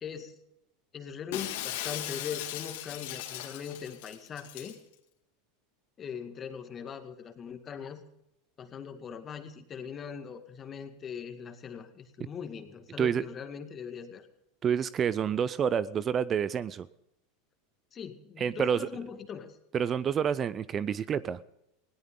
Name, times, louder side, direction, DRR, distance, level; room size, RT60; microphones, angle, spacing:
voice 1, 0.0-0.4 0.9-4.8 6.0-8.0 8.6-14.3 17.9-19.6, left 7 dB, 30° left, 7 dB, 2.0 m, -41 dB
Shatter, 1.3-4.8, left 13 dB, 70° left, 2.4 m, -38 dB
voice 2, 14.6-16.9 18.4-18.9 19.7-21.4, right 8 dB, 30° right, 18 dB, 0.6 m, -28 dB
20.0 x 17.5 x 3.9 m, 0.84 s
hypercardioid pair, 100°, 0 cm